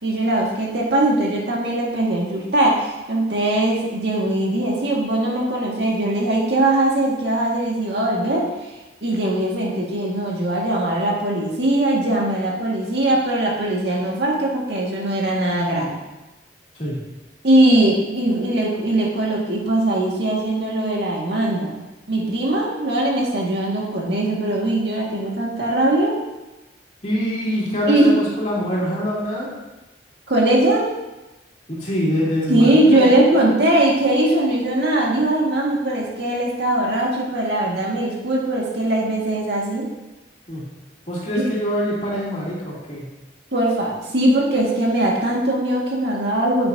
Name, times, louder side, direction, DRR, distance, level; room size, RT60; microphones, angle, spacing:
voice 1, 0.0-8.7 9.0-16.0 17.4-21.7 22.1-26.2 27.9-28.1 30.3-30.9 32.5-39.9 43.5-46.7, right 1 dB, 70° right, -3 dB, 2.0 m, -20 dB
voice 2, 27.0-29.5 31.7-33.3 40.5-40.7 41.1-43.1, equal, 40° left, -6 dB, 2.8 m, -24 dB
9.9 x 7.7 x 2.8 m, 1.1 s
head